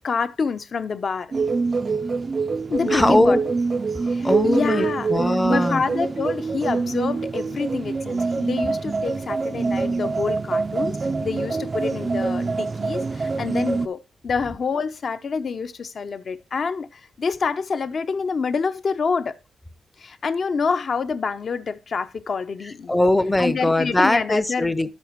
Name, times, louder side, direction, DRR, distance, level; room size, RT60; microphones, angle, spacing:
voice 1, 0.0-1.3 2.7-3.4 4.1-5.1 5.5-19.4 20.0-23.0 23.4-24.7, left 5 dB, 50° left, 0.7 m, -27 dB
sound 1, 1.3-13.9, right 4 dB, 30° right, 0.4 m, -25 dB
voice 2, 2.9-3.4 4.2-5.8 22.9-24.9, left 1 dB, 10° left, 0.6 m, -20 dB
11.0 x 8.3 x 3.0 m
wide cardioid pair, 140°, 0 cm